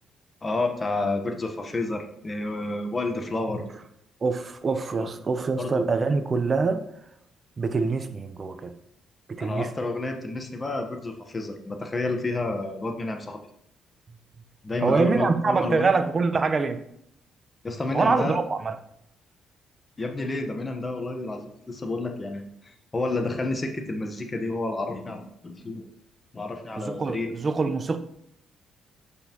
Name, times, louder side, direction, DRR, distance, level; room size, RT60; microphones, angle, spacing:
voice 1, 0.4-3.6 5.0-5.1 5.6-5.8 9.4-13.5 14.6-15.9 17.6-18.4 20.0-25.8 26.3-27.3, left 2 dB, 25° left, 4 dB, 1.0 m, -30 dB
voice 2, 4.2-6.8 7.6-8.7 9.3-9.7 14.8-16.8 17.9-18.8 26.8-28.0, right 4 dB, 35° right, 9 dB, 0.7 m, -24 dB
8.0 x 5.5 x 2.9 m, 0.74 s
cardioid pair, 90°, 0 cm